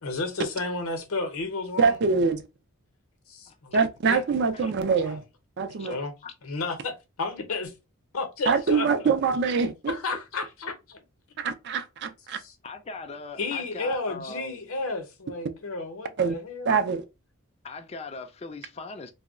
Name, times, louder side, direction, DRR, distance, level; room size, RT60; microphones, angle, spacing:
voice 1, 0.0-2.0 3.3-3.8 4.1-4.2 5.0-5.2 5.7-6.1 6.4-7.7 8.1-9.1 9.9-11.0 12.4-12.5 13.4-16.8, left 3 dB, 65° left, 0.7 m, -32 dB
voice 2, 1.8-2.4 3.7-5.2 5.6-6.0 8.5-9.9 11.4-12.4 16.2-16.4 16.7-17.0, right 5 dB, 50° right, 0.4 m, -24 dB
voice 3, 3.5-3.8 4.5-4.7 5.8-6.0 6.2-6.3 12.6-14.6 17.6-19.1, left 3 dB, 30° left, 0.3 m, -40 dB
2.2 x 2.0 x 3.5 m
head